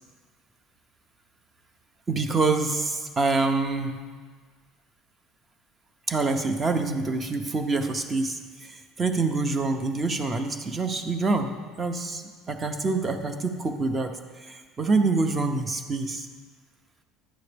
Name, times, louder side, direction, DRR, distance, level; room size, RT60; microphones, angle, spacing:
voice 1, 2.1-3.9 6.1-12.2 12.5-14.1 14.4-16.3, right 3 dB, 20° right, 7 dB, 0.7 m, -26 dB
11.0 x 8.3 x 3.4 m, 1.5 s
cardioid pair, 140°, 0 cm